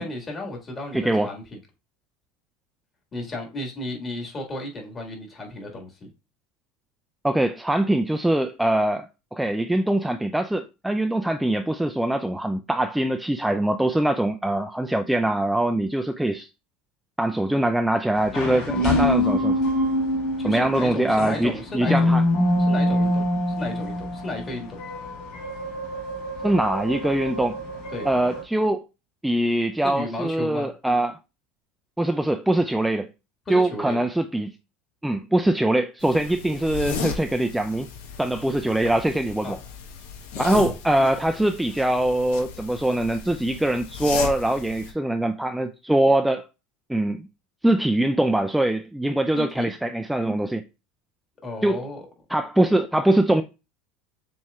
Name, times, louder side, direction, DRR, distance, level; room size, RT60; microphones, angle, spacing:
voice 1, 0.0-1.6 3.1-6.1 20.4-22.1 22.6-24.8 27.9-28.1 29.8-30.7 33.5-34.0 39.4-39.6 49.3-49.7 51.4-52.0, left 1 dB, 25° left, 1.7 m, -34 dB
voice 2, 0.9-1.3 7.2-16.5 17.2-19.6 20.4-22.2 26.4-27.6 28.1-28.8 29.2-31.2 32.0-33.1 33.5-34.5 35.0-37.9 38.2-39.6 40.4-46.5 46.9-47.3 47.6-50.6 51.6-51.8 52.3-53.4, right 1 dB, 5° right, 0.3 m, -23 dB
sound 1, 18.2-28.4, left 1 dB, 60° left, 1.7 m, -25 dB
sound 2, 36.0-44.9, left 6 dB, 85° left, 0.9 m, -35 dB
7.1 x 3.1 x 2.3 m
supercardioid pair, 120°, 0 cm